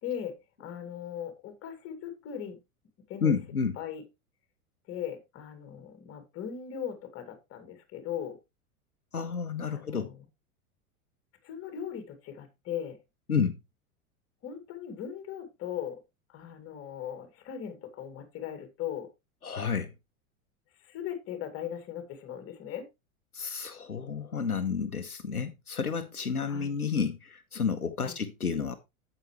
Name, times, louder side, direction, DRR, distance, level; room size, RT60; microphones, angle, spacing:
voice 1, 0.0-2.6 3.1-3.3 3.8-4.0 4.9-8.4 9.7-10.3 11.4-13.0 14.4-16.0 16.3-19.1 20.8-22.9 26.5-26.8 28.0-28.2, left 9 dB, 30° left, 2.4 m, -38 dB
voice 2, 3.2-3.8 9.1-10.1 13.3-13.6 19.4-19.9 23.3-28.8, left 6 dB, 85° left, 0.9 m, -30 dB
9.0 x 8.0 x 3.1 m
figure-of-eight pair, 90°, 43 cm